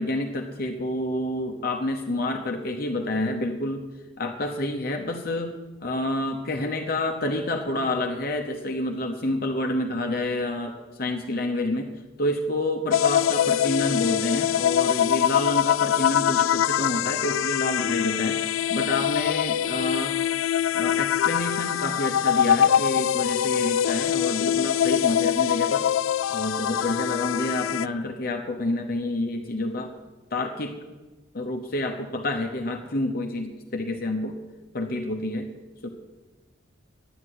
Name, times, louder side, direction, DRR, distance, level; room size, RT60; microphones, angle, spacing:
voice 1, 0.0-3.8 4.2-5.6 5.8-11.9 12.2-18.4 18.7-20.1 20.7-25.8 26.3-29.9 30.3-30.7 31.3-34.4 34.7-35.5 35.8-35.9, left 1 dB, 50° left, 3 dB, 0.9 m, -28 dB
sound 1, 12.9-27.9, left 10 dB, 90° left, 0.3 m, -23 dB
10.5 x 8.2 x 9.6 m, 1.2 s
head